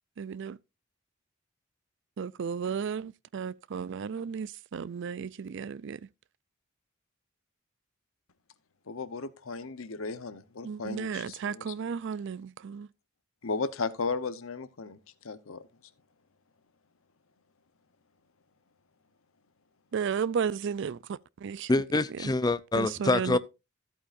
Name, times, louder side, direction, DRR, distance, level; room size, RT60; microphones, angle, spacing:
voice 1, 0.2-0.6 2.2-6.1 10.6-12.9 19.9-21.7 22.1-22.3 22.7-23.4, right 6 dB, 60° right, 0.4 m, -34 dB
voice 2, 8.9-11.7 13.4-15.0 15.2-15.6, left 4 dB, 75° left, 0.9 m, -35 dB
voice 3, 21.7-23.4, left 2 dB, 20° left, 0.5 m, -26 dB
14.0 x 8.5 x 2.5 m
head